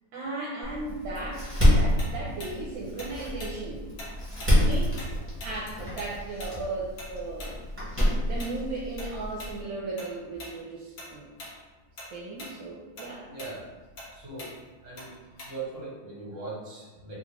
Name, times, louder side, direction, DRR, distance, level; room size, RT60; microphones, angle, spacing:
voice 1, 0.1-1.5 1.8-3.8 4.4-5.1 5.4-7.5 8.2-11.3 12.1-13.3, right 2 dB, 75° right, -5 dB, 1.3 m, -36 dB
Door, 0.6-9.6, equal, 15° right, 0.5 m, -28 dB
Tick-tock, 2.0-5.1 5.4-10.1 10.4-10.6 11.0-11.6 11.8-15.8, left 1 dB, 60° left, 1.1 m, -43 dB
voice 2, 13.2-13.7 14.1-14.5 14.8-15.1 15.4-17.1, right 3 dB, 45° right, -6 dB, 1.5 m, -39 dB
3.6 x 2.4 x 3.1 m, 1.3 s
omnidirectional pair, 2.1 m